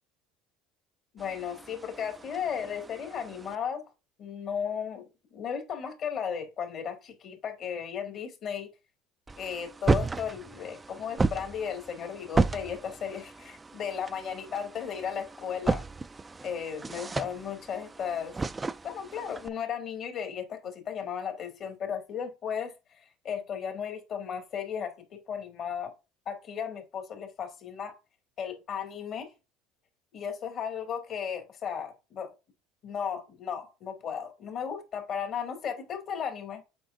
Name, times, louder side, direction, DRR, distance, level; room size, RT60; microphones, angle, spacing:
voice 1, 1.1-3.8 4.2-8.7 9.4-15.8 16.4-18.3 18.8-25.9 26.3-27.9 28.4-29.3 30.1-32.3 32.8-36.6, left 7 dB, 50° left, 2.4 m, -35 dB
sound 1, 1.2-3.6 9.3-19.5, right 3 dB, 20° right, 0.4 m, -33 dB
7.8 x 5.0 x 2.5 m
supercardioid pair, 100°, 0 cm